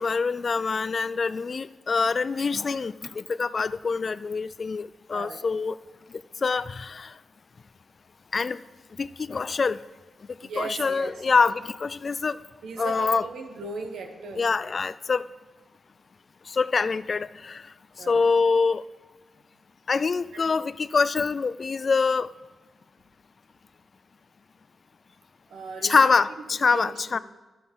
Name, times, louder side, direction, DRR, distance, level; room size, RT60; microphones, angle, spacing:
voice 1, 0.0-5.8 6.4-7.1 8.3-8.6 9.0-9.8 10.6-12.4 12.8-13.2 14.4-15.2 16.5-17.6 18.1-18.8 19.9-22.3 25.8-27.2, left 4 dB, 50° left, 17 dB, 0.3 m, -25 dB
voice 2, 10.4-11.2 12.6-14.4 18.0-18.3 20.3-20.5 25.5-26.1 26.7-27.2, right 3 dB, 80° right, 4 dB, 1.4 m, -37 dB
11.5 x 7.7 x 5.5 m, 1.2 s
cardioid pair, 60°, 0 cm